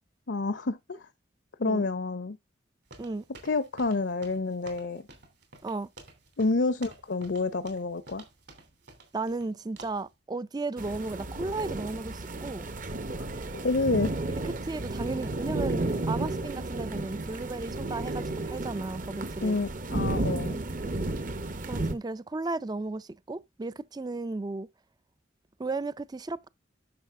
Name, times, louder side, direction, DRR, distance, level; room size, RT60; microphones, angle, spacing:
voice 1, 0.3-1.1 1.6-2.4 3.4-5.0 6.4-8.2 13.2-13.3 13.6-14.2 19.4-20.6, left 3 dB, 65° left, 0.7 m, -28 dB
sound 1, 2.9-9.5 9.8-10.1, right 3 dB, 60° right, 3.1 m, -51 dB
voice 2, 9.1-12.7 14.6-19.6 21.7-24.7 25.6-26.5, right 3 dB, 20° right, 0.4 m, -34 dB
sound 2, 10.8-21.9, right 2 dB, 45° right, 1.0 m, -33 dB
10.5 x 6.5 x 3.6 m
head